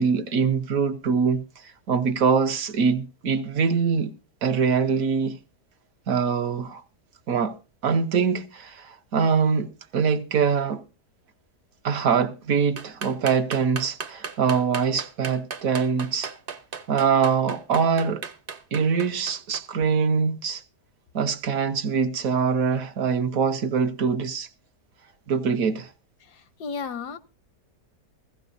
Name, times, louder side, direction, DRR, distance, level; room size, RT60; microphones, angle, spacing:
voice 1, 0.0-1.4 1.9-4.1 4.4-5.4 6.1-6.8 7.3-7.5 7.8-10.8 11.8-16.3 16.9-18.2 18.7-20.6 21.1-24.5 25.3-25.9, right 6 dB, 65° right, 1.3 m, -23 dB
sound 1, 12.8-19.6, right 5 dB, 40° right, 0.9 m, -36 dB
voice 2, 26.3-27.2, left 5 dB, 85° left, 1.5 m, -33 dB
15.5 x 15.5 x 2.6 m
omnidirectional pair, 1.7 m